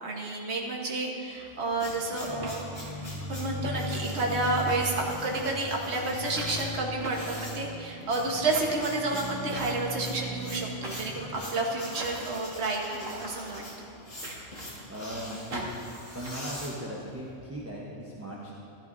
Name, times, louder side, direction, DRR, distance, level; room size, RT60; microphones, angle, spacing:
voice 1, 0.0-2.6 3.2-13.6, right 2 dB, 60° right, -1 dB, 1.5 m, -30 dB
sound 1, 1.4-17.3, left 1 dB, 65° left, 2.9 m, -43 dB
sound 2, 1.5-1.6 2.4-3.2 3.6-3.8 4.1-4.4 4.7-4.8 5.3-5.4 6.4-6.6 7.0-7.9 8.5-8.8 9.5-10.0 10.8-11.2 12.0-12.3 13.0-13.3 14.2-14.9 15.5-16.3, right 2 dB, 80° right, 1.7 m, -40 dB
sound 3, 2.2-11.3, equal, 25° left, 1.2 m, -39 dB
voice 2, 14.9-15.6 16.1-18.5, right 1 dB, 15° right, -5 dB, 1.0 m, -38 dB
14.0 x 13.5 x 2.7 m, 2.6 s
omnidirectional pair, 1.3 m